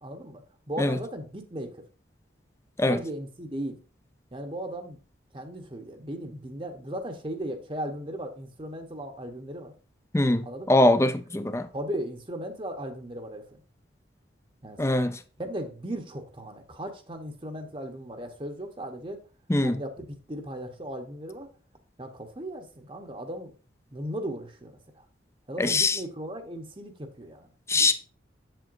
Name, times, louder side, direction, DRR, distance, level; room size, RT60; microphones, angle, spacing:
voice 1, 0.0-1.9 2.9-3.8 4.3-5.0 5.3-9.7 10.4-10.7 11.7-13.6 14.6-14.9 15.4-19.2 19.6-21.5 22.0-23.6 23.9-25.1 25.5-27.9, right 1 dB, 30° right, 1.0 m, -37 dB
voice 2, 10.1-11.7 14.8-15.2 19.5-19.8 25.6-26.0 27.7-27.9, left 2 dB, 15° left, 0.6 m, -23 dB
7.7 x 7.7 x 2.6 m
head